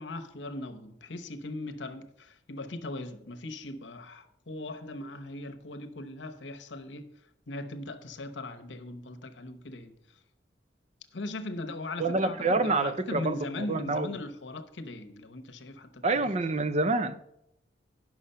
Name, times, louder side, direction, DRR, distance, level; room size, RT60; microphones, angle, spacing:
voice 1, 0.0-7.1 7.5-9.9 11.1-16.3, left 2 dB, 75° left, 0.9 m, -39 dB
voice 2, 12.0-14.2 16.0-17.2, right 3 dB, 35° right, 0.5 m, -27 dB
10.0 x 6.0 x 5.6 m
head